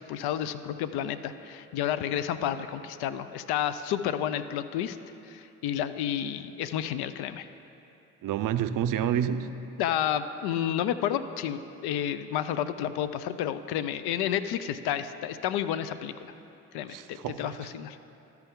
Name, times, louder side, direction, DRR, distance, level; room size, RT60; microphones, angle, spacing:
voice 1, 0.1-5.0 5.2-7.5 9.8-16.3 16.7-18.1, left 10 dB, 75° left, 12 dB, 0.5 m, -31 dB
voice 2, 8.2-9.6 16.9-17.6, right 9 dB, 55° right, 11 dB, 0.5 m, -29 dB
13.5 x 4.6 x 3.7 m, 2.8 s
hypercardioid pair, 40°, 39 cm